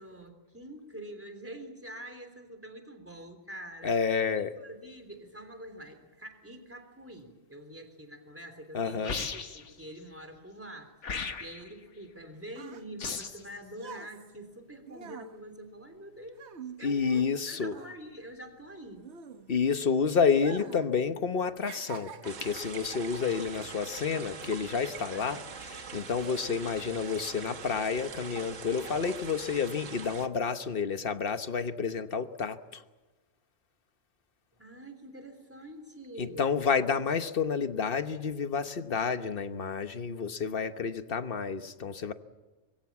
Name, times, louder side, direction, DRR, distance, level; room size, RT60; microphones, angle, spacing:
voice 1, 0.0-3.9 4.3-10.9 11.4-16.4 16.8-19.1 25.1-25.4 34.6-36.5, right 1 dB, 10° right, 5 dB, 3.3 m, -46 dB
voice 2, 3.8-4.5 8.7-9.2 16.8-17.8 19.5-32.8 36.2-42.1, left 6 dB, 45° left, 9 dB, 1.3 m, -30 dB
sound 1, 9.0-9.7 11.0-11.7 13.0-13.5, left 5 dB, 65° left, 1.7 m, -36 dB
sound 2, 12.0-17.4 17.7-19.8 20.3-20.9 21.2-22.7 23.4-23.6, right 7 dB, 60° right, 1.4 m, -46 dB
sound 3, 22.2-30.3, right 6 dB, 75° right, 1.6 m, -43 dB
25.5 x 22.0 x 7.3 m, 1.2 s
omnidirectional pair, 1.3 m